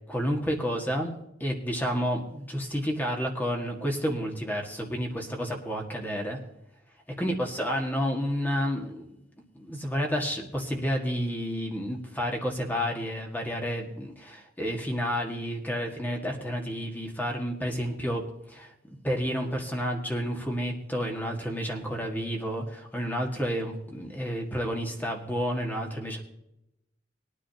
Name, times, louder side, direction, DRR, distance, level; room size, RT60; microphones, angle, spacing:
voice 1, 0.1-1.1 1.4-6.4 7.2-9.2 9.5-18.2 18.5-18.7 19.0-26.2, equal, 10° left, 0 dB, 1.8 m, -30 dB
21.0 x 10.0 x 2.9 m, 0.86 s
head